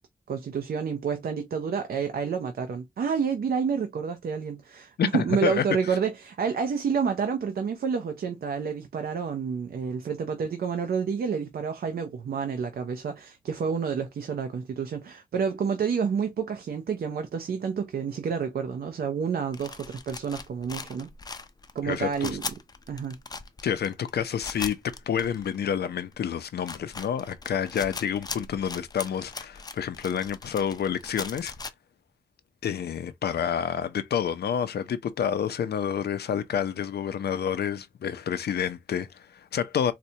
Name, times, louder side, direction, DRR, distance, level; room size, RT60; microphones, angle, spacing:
voice 1, 0.3-21.1 21.7-22.4 22.9-23.2, right 6 dB, 70° right, 0.5 m, -29 dB
voice 2, 5.0-5.6 21.8-22.4 23.6-31.5 32.6-39.9, left 8 dB, 85° left, 0.5 m, -29 dB
sound 1, 19.5-25.8 26.1-26.2 26.5-31.7, left 4 dB, 25° left, 0.4 m, -40 dB
4.1 x 2.2 x 2.7 m
wide cardioid pair, 120°, 16 cm